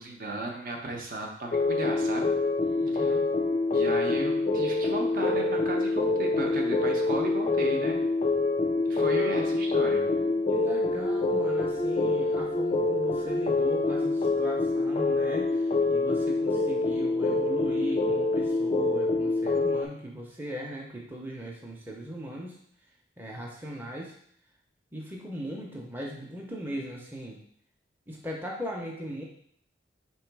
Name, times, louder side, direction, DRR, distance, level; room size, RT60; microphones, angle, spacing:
voice 1, 0.0-2.3 2.9-3.1 3.7-8.0 8.9-10.1, right 2 dB, 50° right, 0 dB, 0.7 m, -34 dB
sound 1, 1.5-19.9, left 3 dB, 35° left, 0.4 m, -26 dB
voice 2, 2.8-3.2 9.1-9.7 10.0-15.5 15.9-22.6 23.2-24.1 24.9-27.4 28.1-29.2, equal, 10° right, -2 dB, 0.6 m, -39 dB
3.7 x 3.0 x 4.6 m, 0.63 s
head